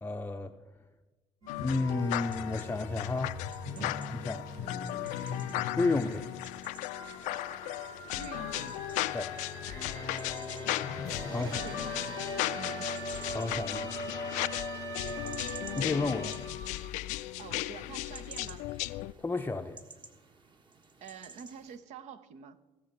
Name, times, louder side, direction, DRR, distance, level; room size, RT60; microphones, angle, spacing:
voice 1, 0.0-0.5 1.6-3.4 3.8-4.5 5.8-6.3 9.1-9.4 11.3-11.6 13.3-14.1 15.8-16.4 19.2-19.8, left 3 dB, 15° left, 5 dB, 0.6 m, -32 dB
sound 1, 1.4-16.8, left 1 dB, 85° right, 5.0 m, -41 dB
sound 2, 1.5-19.1, left 17 dB, 65° left, 0.4 m, -36 dB
sound 3, 2.0-21.8, right 3 dB, 35° right, 1.7 m, -55 dB
voice 2, 3.7-4.1 8.1-8.8 11.4-12.2 12.5-13.0 17.4-18.7 21.0-22.6, right 7 dB, 60° right, 11 dB, 0.9 m, -47 dB
17.0 x 6.9 x 5.1 m, 1.2 s
hypercardioid pair, 55°, 14 cm